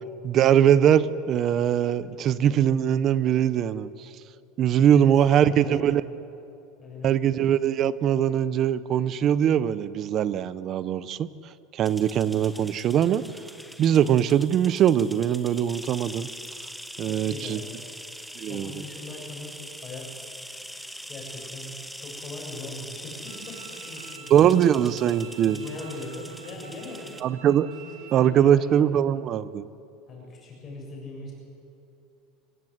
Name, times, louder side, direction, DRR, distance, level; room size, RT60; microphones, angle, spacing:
voice 1, 0.2-4.1 4.6-6.0 7.0-11.3 11.7-13.2 13.8-16.3 17.0-17.6 18.4-18.7 24.3-25.6 27.2-27.7 28.1-29.7, right 9 dB, 35° right, 17 dB, 0.6 m, -21 dB
voice 2, 4.9-6.0 6.8-7.1 17.1-17.7 18.5-20.3 21.1-24.3 25.4-27.3 27.8-28.9 30.1-31.3, left 2 dB, 25° left, -1 dB, 6.8 m, -40 dB
sound 1, 11.8-27.2, equal, ahead, 0.9 m, -42 dB
Bowed string instrument, 23.3-28.3, right 8 dB, 65° right, 2.3 m, -47 dB
26.5 x 17.5 x 8.0 m, 2.7 s
supercardioid pair, 160°, 0 cm